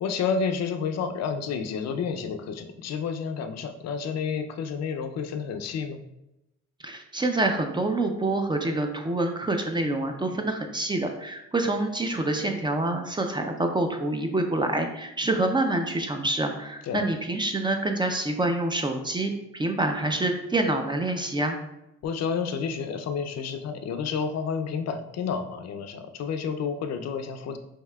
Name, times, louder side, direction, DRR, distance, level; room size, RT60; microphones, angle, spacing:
voice 1, 0.0-6.0 16.8-17.0 22.0-27.6, left 6 dB, 60° left, 7 dB, 0.5 m, -30 dB
voice 2, 6.8-21.6, right 2 dB, 15° right, 4 dB, 0.4 m, -27 dB
5.6 x 2.7 x 2.3 m, 0.88 s
cardioid pair, 90°, 30 cm